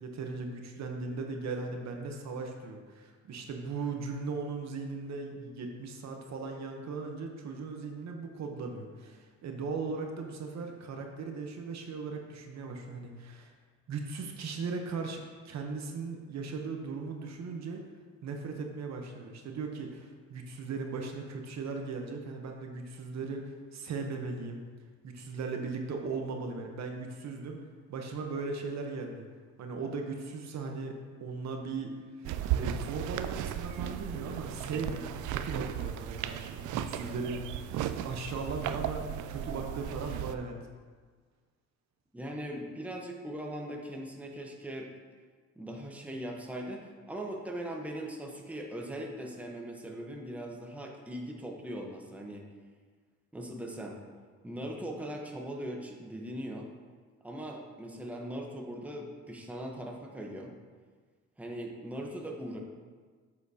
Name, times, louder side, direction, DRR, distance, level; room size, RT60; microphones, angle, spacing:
voice 1, 0.0-13.5 13.9-17.8 18.2-24.6 25.0-27.6 27.9-29.3 29.6-37.5 37.8-40.6, right 4 dB, 65° right, 3 dB, 0.9 m, -38 dB
sound 1, 32.2-40.4, right 10 dB, 80° right, 0.4 m, -35 dB
voice 2, 42.1-44.9 45.6-52.5 53.3-54.0 54.4-56.7 57.2-60.5 61.4-62.6, right 1 dB, 5° right, 0 dB, 1.0 m, -40 dB
8.1 x 6.8 x 2.8 m, 1.5 s
cardioid pair, 90°, 30 cm